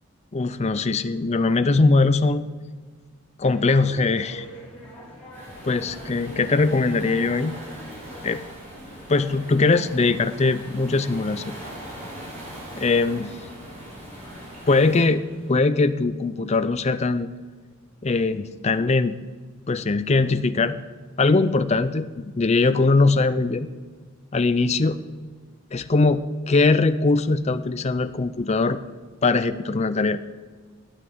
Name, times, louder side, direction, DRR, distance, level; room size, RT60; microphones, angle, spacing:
voice 1, 0.3-2.4 3.4-4.5 5.6-7.6 8.2-8.4 9.1-11.4 12.8-13.3 14.7-17.3 18.0-19.2 19.7-20.8 21.2-22.1 22.3-23.7 24.3-25.0 25.7-28.8 29.2-30.2, left 3 dB, 30° left, 11 dB, 0.5 m, -21 dB
sound 1, 3.4-15.5, equal, 5° left, 4.5 m, -45 dB
Waves surf, 5.3-15.1, equal, 35° right, 4.8 m, -41 dB
13.0 x 9.8 x 7.8 m, 1.5 s
head